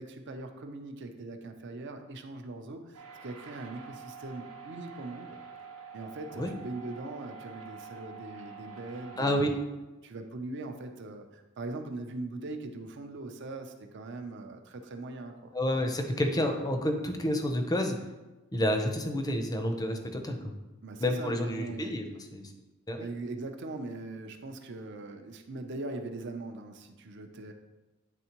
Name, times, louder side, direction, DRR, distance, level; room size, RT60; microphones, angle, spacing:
voice 1, 0.0-5.4 5.9-9.6 10.0-15.5 16.3-16.5 20.8-21.9 23.0-27.5, right 2 dB, 55° right, 6 dB, 0.5 m, -41 dB
sound 1, 2.9-9.4, right 5 dB, 85° right, 0.9 m, -47 dB
voice 2, 9.2-9.5 15.5-18.0 18.5-20.5 21.0-22.1 22.3-22.5 22.9-23.1, left 1 dB, 15° left, 5 dB, 0.5 m, -29 dB
9.1 x 3.5 x 2.9 m, 1.1 s
head